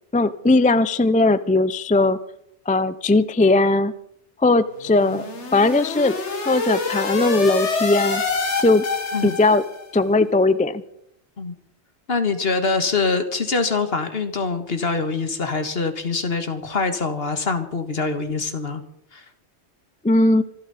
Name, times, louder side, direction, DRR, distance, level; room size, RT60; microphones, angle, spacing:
voice 1, 0.1-2.2 2.7-3.9 4.4-5.3 5.5-6.2 6.5-8.2 8.6-8.8 9.2-9.6 9.9-10.8 20.0-20.4, left 2 dB, 10° left, 14 dB, 0.4 m, -18 dB
sound 1, 4.8-9.8, left 4 dB, 85° left, 2.1 m, -26 dB
voice 2, 12.1-18.8 19.1-19.2, left 4 dB, 60° left, 8 dB, 1.9 m, -24 dB
26.0 x 12.5 x 4.2 m, 0.74 s
omnidirectional pair, 1.2 m